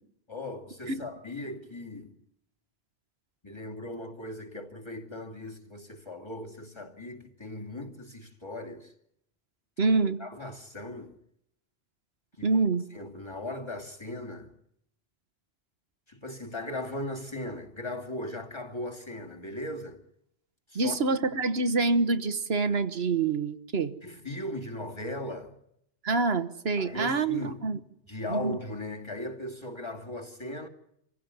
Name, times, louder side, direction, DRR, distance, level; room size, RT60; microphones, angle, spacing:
voice 1, 0.3-2.1 3.4-8.9 10.2-11.1 12.4-12.5 12.9-14.5 16.1-20.0 20.7-21.0 24.0-25.6 26.8-27.7 28.1-30.7, left 1 dB, 25° left, 2.6 m, -38 dB
voice 2, 9.8-10.2 12.4-12.8 20.7-23.9 26.0-27.8 28.3-28.6, right 3 dB, 65° right, 1.4 m, -26 dB
26.5 x 16.0 x 9.6 m
omnidirectional pair, 1.1 m